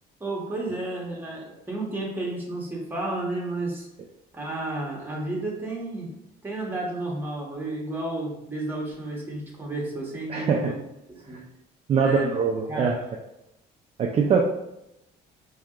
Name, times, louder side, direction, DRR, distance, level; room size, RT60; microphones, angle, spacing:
voice 1, 0.2-3.9 4.3-6.1 6.4-10.8 11.3-11.4 12.0-12.4 12.7-13.1, right 2 dB, 10° right, -3 dB, 1.1 m, -32 dB
voice 2, 10.3-10.7 11.9-13.0 14.0-14.4, right 5 dB, 35° right, 2 dB, 0.4 m, -22 dB
4.4 x 2.8 x 2.4 m, 0.88 s
cardioid pair, 110°, 17 cm